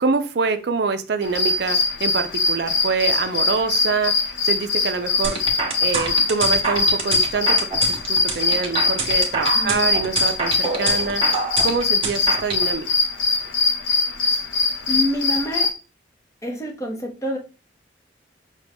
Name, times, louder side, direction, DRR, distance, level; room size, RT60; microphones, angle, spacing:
voice 1, 0.0-5.4 5.8-7.6 7.9-11.2 11.6-12.9, right 4 dB, 60° right, 8 dB, 0.4 m, -25 dB
sound 1, 1.2-15.7, left 4 dB, 80° left, 0.8 m, -22 dB
sound 2, 5.2-12.6, right 4 dB, 30° right, 0.9 m, -26 dB
voice 2, 9.5-9.9 14.9-15.7 16.4-17.4, left 1 dB, 15° left, 1 dB, 0.7 m, -26 dB
6.1 x 2.2 x 3.4 m, 0.34 s
head